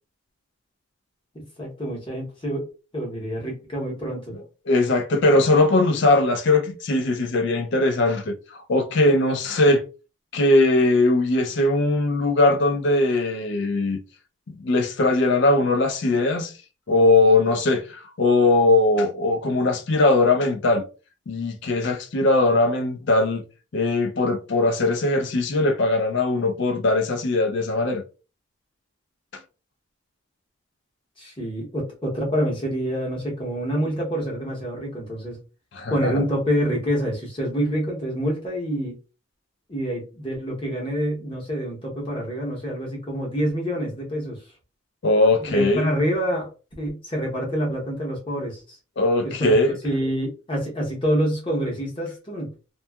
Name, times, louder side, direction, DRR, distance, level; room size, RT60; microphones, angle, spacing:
voice 1, 1.3-2.7 2.9-4.2 31.2-35.4 35.9-39.0 39.7-44.4 45.5-46.5 46.8-48.8 49.2-49.5 49.8-52.5, equal, 25° left, 0.8 m, -27 dB
voice 2, 4.3-9.8 10.3-14.0 14.5-16.5 16.9-20.8 21.3-23.4 23.7-28.0 29.3-29.4 35.7-36.2 45.0-45.9 49.0-49.8, left 2 dB, 55° left, 0.4 m, -20 dB
2.7 x 2.2 x 2.2 m
head